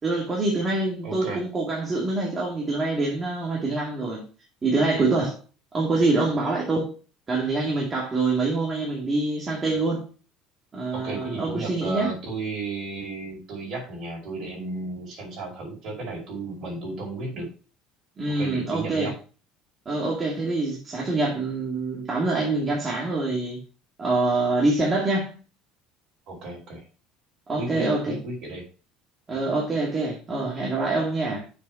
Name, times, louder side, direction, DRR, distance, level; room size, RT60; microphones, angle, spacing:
voice 1, 0.0-4.3 4.6-5.4 5.7-6.9 7.3-10.1 10.7-12.1 18.2-19.1 19.9-23.6 24.0-25.3 27.5-28.2 29.3-31.4, right 2 dB, 25° right, 2.4 m, -25 dB
voice 2, 1.0-1.4 10.9-17.5 18.4-19.1 26.3-26.8 27.6-28.6 29.3-29.4, right 3 dB, 55° right, 5.0 m, -34 dB
7.0 x 4.7 x 5.8 m
supercardioid pair, 110°, 0 cm